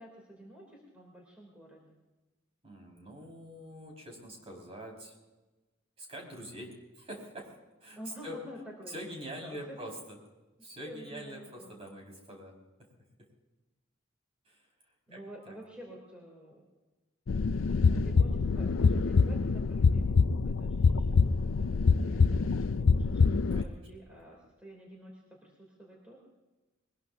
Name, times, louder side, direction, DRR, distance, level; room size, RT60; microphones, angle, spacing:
voice 1, 0.0-1.9 7.9-8.9 9.3-9.8 10.6-11.7 15.1-16.7 17.8-26.2, equal, 5° right, -2 dB, 3.0 m, -50 dB
voice 2, 2.6-5.1 6.0-8.0 8.2-8.4 8.9-10.2 10.6-12.5 14.5-14.7 15.1-15.2 15.5-15.6 23.5-23.8 24.2-24.3, equal, 30° right, -1 dB, 5.2 m, -45 dB
sound 1, 17.3-23.6, left 4 dB, 75° left, 0.5 m, -25 dB
22.5 x 21.0 x 2.7 m, 1.1 s
head